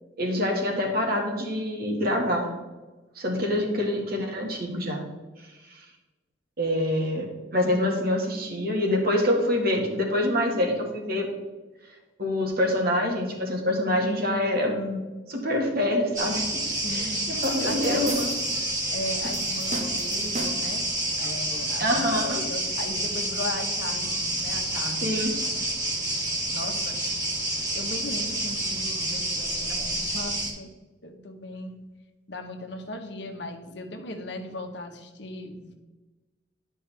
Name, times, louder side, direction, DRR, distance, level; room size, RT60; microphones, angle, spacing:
voice 1, 0.2-2.5 3.2-5.0 5.7-5.8 6.6-7.3 7.5-11.3 12.2-15.0 15.3-16.6 16.9-18.1 21.8-22.4 25.0-25.3, left 1 dB, 55° right, 1 dB, 1.7 m, -26 dB
sound 1, 16.1-30.5, right 1 dB, 20° right, 1.9 m, -29 dB
voice 2, 16.8-17.1 17.6-18.4 18.9-20.9 21.2-25.1 25.5-25.7 26.5-27.0 27.7-30.7 31.0-31.8 32.3-35.7, left 1 dB, 65° left, 4 dB, 1.1 m, -37 dB
sound 2, 17.4-18.6 19.2-20.8, right 1 dB, 40° right, 1.0 m, -36 dB
11.0 x 5.4 x 3.4 m, 1.2 s
head